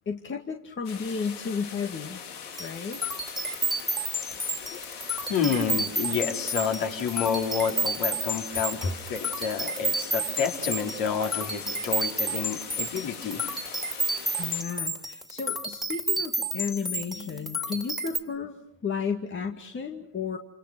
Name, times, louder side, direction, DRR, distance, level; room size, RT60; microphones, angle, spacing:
voice 1, 0.1-2.2 2.6-3.0 8.8-8.9 14.4-20.4, left 5 dB, 25° left, 4 dB, 2.2 m, -33 dB
sound 1, 0.8-14.6, left 7 dB, 85° left, 3.1 m, -42 dB
sound 2, 2.5-18.2, right 1 dB, ahead, 3.3 m, -31 dB
voice 2, 5.3-13.4, left 6 dB, 50° left, 1 dB, 5.0 m, -29 dB
28.5 x 27.0 x 6.2 m, 0.74 s
hypercardioid pair, 85°, 43 cm